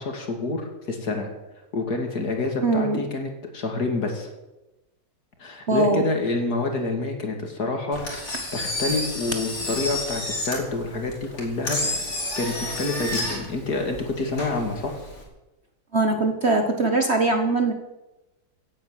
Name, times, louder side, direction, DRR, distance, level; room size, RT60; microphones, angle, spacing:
voice 1, 0.0-1.3 1.7-4.3 5.4-12.0 12.4-14.9, left 3 dB, 55° left, 4 dB, 2.8 m, -28 dB
voice 2, 2.6-3.0 5.7-6.0 15.9-17.7, right 3 dB, 40° right, 5 dB, 1.3 m, -21 dB
Engine, 7.9-15.2, left 1 dB, 35° left, 4.0 m, -31 dB
17.0 x 8.9 x 7.5 m, 1.0 s
omnidirectional pair, 2.1 m